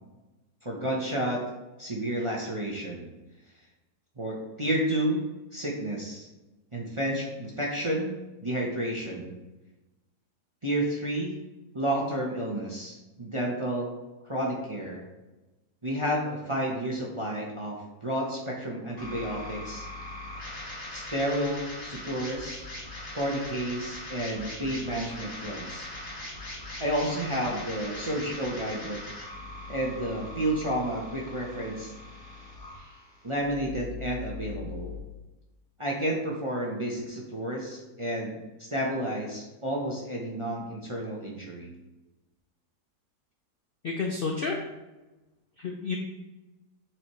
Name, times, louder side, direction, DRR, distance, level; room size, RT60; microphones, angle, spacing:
voice 1, 0.6-1.4 1.8-3.1 4.2-5.2 5.5-6.3 6.7-8.1 8.4-9.3 10.6-11.3 11.7-13.9 14.2-15.0 15.8-19.9 20.9-22.7 23.1-25.9 26.8-29.0 29.7-31.9 33.2-34.9 35.8-41.7, right 1 dB, 25° right, -3 dB, 0.7 m, -31 dB
sound 1, 19.0-35.0, left 2 dB, 25° left, 1.6 m, -41 dB
voice 2, 43.8-44.6 45.6-46.0, left 4 dB, 55° left, 1 dB, 0.6 m, -30 dB
7.7 x 4.4 x 3.1 m, 1.1 s
omnidirectional pair, 1.7 m